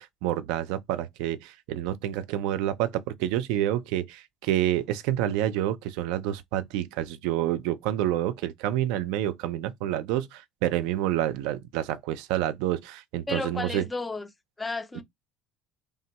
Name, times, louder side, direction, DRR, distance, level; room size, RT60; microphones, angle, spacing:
voice 1, 0.0-13.8, right 12 dB, 75° right, 0.4 m, -28 dB
voice 2, 13.3-14.3 14.6-15.0, left 3 dB, 10° left, 0.4 m, -32 dB
3.3 x 2.2 x 2.8 m
cardioid pair, 150°, 0 cm